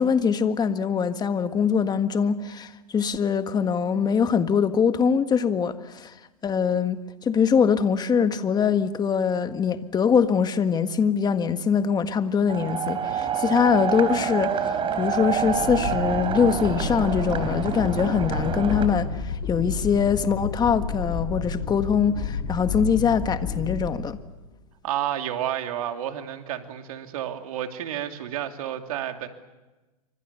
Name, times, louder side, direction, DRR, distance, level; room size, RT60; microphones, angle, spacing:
voice 1, 0.0-6.1 6.4-24.2, left 6 dB, 20° left, 1.7 m, -23 dB
sound 1, 12.5-18.9, right 7 dB, 30° right, 3.6 m, -27 dB
sound 2, 15.0-24.5, left 5 dB, 65° left, 6.6 m, -31 dB
voice 2, 24.8-29.3, right 11 dB, 70° right, 2.8 m, -30 dB
27.5 x 25.5 x 7.0 m
hypercardioid pair, 110°, 19 cm